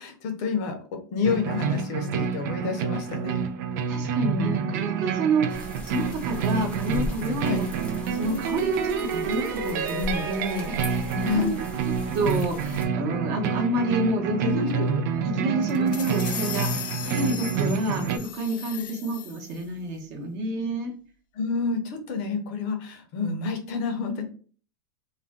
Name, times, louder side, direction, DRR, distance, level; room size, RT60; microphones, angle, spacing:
voice 1, 0.0-3.4 7.4-7.6 11.2-11.5 14.4-15.0 18.7-18.8 21.3-24.2, left 5 dB, 50° left, 4 dB, 0.6 m, -29 dB
sound 1, 1.2-18.2, right 6 dB, 65° right, 0.4 m, -28 dB
voice 2, 3.9-7.7 8.0-11.6 11.8-14.5 15.2-20.9, right 2 dB, 40° right, 1 dB, 0.8 m, -29 dB
sound 2, 5.5-12.9, left 1 dB, 10° left, 0.5 m, -39 dB
sound 3, 15.6-19.6, left 8 dB, 85° left, 0.6 m, -37 dB
2.4 x 2.1 x 3.6 m, 0.41 s
supercardioid pair, 155°, 11 cm